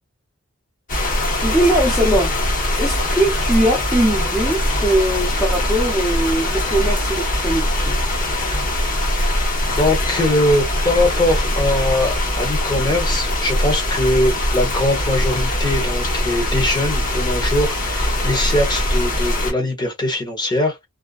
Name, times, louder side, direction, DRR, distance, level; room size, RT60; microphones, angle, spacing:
sound 1, 0.9-19.5, left 1 dB, 40° left, 1.0 m, -21 dB
voice 1, 1.4-2.4 2.8-8.0, right 1 dB, ahead, 0.6 m, -20 dB
voice 2, 9.7-20.9, left 1 dB, 20° left, 1.0 m, -21 dB
2.5 x 2.2 x 2.3 m
head